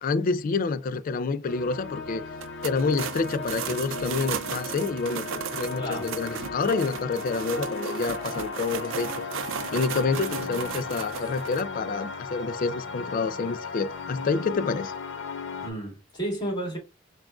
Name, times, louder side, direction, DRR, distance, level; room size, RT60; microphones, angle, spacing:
voice 1, 0.0-2.2 2.6-9.2 9.7-14.9, left 4 dB, 45° left, 0.3 m, -28 dB
sound 1, 1.5-15.7, left 4 dB, 65° left, 0.8 m, -36 dB
sound 2, 2.3-11.6, right 7 dB, 70° right, 0.4 m, -35 dB
voice 2, 5.7-6.1 15.6-16.8, right 1 dB, 20° left, 2.0 m, -32 dB
5.9 x 2.4 x 2.3 m
head